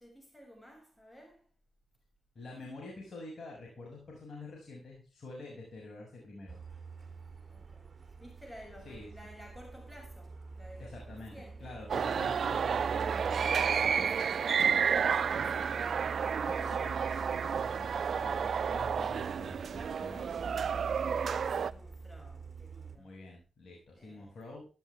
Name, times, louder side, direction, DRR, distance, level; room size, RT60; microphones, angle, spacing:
voice 1, 0.0-1.5 7.5-11.8 13.9-14.5 14.8-16.5 21.2-23.2 23.9-24.3, equal, 15° left, 6.6 m, -54 dB
voice 2, 2.4-6.6 8.9-9.1 10.8-11.3 11.6-13.3 13.8-14.1 15.2-15.5 16.4-20.5 23.0-24.7, left 2 dB, 55° left, 6.7 m, -47 dB
Truck, 6.5-23.0, right 4 dB, 45° right, 3.1 m, -45 dB
sound 1, 11.9-21.7, right 7 dB, 65° right, 0.6 m, -31 dB
14.0 x 13.0 x 3.5 m
supercardioid pair, 45°, 0 cm